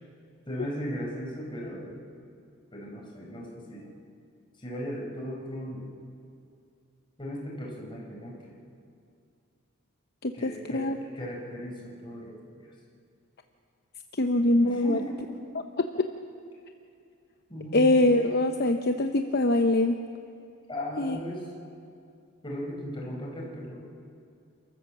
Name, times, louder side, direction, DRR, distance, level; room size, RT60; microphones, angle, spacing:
voice 1, 0.5-2.0 2.7-3.9 4.6-5.9 7.2-8.6 10.3-12.7 14.6-15.6 17.5-17.9 20.7-21.5 22.4-23.8, equal, 25° left, -2 dB, 4.6 m, -37 dB
voice 2, 10.2-11.0 14.2-15.0 17.7-20.0 21.0-21.2, left 1 dB, 50° left, 6 dB, 0.8 m, -23 dB
28.0 x 13.5 x 7.4 m, 2.5 s
head